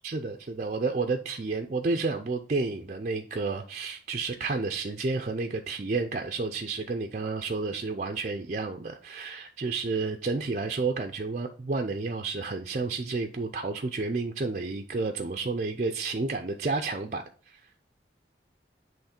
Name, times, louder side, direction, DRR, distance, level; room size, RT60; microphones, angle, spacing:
voice 1, 0.0-17.6, right 3 dB, 40° right, 4 dB, 0.4 m, -31 dB
7.9 x 3.1 x 4.3 m, 0.41 s
head